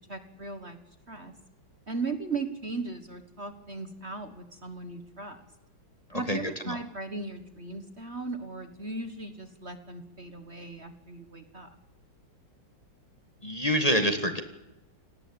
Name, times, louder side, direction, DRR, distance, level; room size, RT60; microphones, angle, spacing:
voice 1, 0.1-0.8 1.1-1.3 1.9-5.4 6.1-11.7, right 3 dB, 35° right, 10 dB, 1.7 m, -37 dB
voice 2, 6.1-6.4 6.7-6.8 13.4-14.4, equal, 20° left, 7 dB, 1.9 m, -26 dB
29.0 x 18.5 x 8.8 m, 1.0 s
omnidirectional pair, 2.0 m